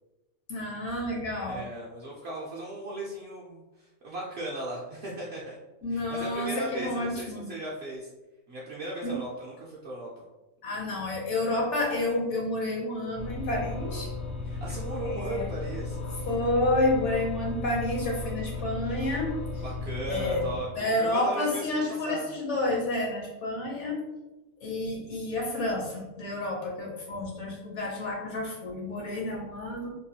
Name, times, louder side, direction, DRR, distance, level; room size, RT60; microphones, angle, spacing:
voice 1, 0.5-1.6 5.8-7.5 9.0-9.2 10.6-14.1 15.0-15.5 16.3-19.6 20.1-20.5 20.8-24.1 24.6-29.9, left 2 dB, 60° left, -2 dB, 0.8 m, -30 dB
voice 2, 1.4-5.6 5.9-8.1 8.5-10.2 14.4-16.0 19.6-22.3, right 1 dB, 65° right, -4 dB, 0.6 m, -37 dB
sound 1, 13.1-20.6, left 3 dB, 90° left, 0.4 m, -35 dB
2.9 x 2.3 x 2.7 m, 1.0 s
omnidirectional pair, 1.5 m